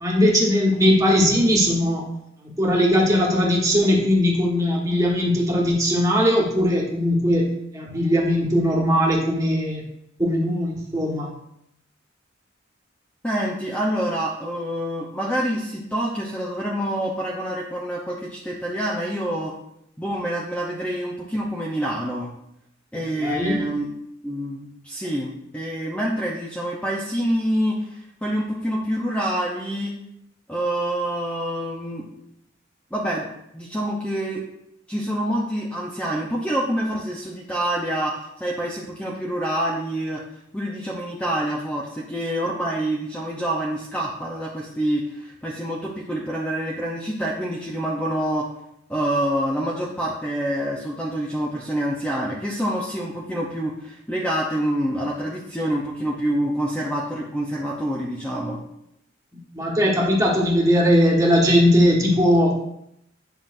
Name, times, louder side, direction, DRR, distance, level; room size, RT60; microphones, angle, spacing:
voice 1, 0.0-2.1 2.6-9.8 10.2-11.3 23.2-23.6 59.5-62.5, equal, 15° right, -3 dB, 1.5 m, -19 dB
voice 2, 13.2-19.5 20.0-22.3 22.9-23.9 24.2-30.0 30.5-32.1 32.9-33.3 33.5-34.4 34.9-40.2 40.5-48.5 48.9-58.6, right 1 dB, 5° left, -4 dB, 0.7 m, -26 dB
9.4 x 5.8 x 2.6 m, 0.80 s
head